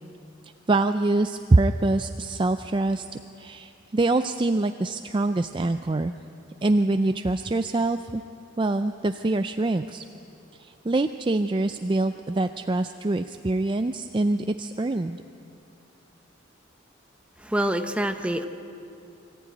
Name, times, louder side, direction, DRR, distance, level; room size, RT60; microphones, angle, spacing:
voice 1, 0.4-3.1 3.4-6.1 6.6-8.2 8.6-10.0 10.6-15.2, right 2 dB, 25° right, 8 dB, 0.4 m, -24 dB
voice 2, 17.4-18.5, right 1 dB, 5° right, 6 dB, 0.9 m, -26 dB
24.5 x 14.5 x 9.2 m, 2.7 s
head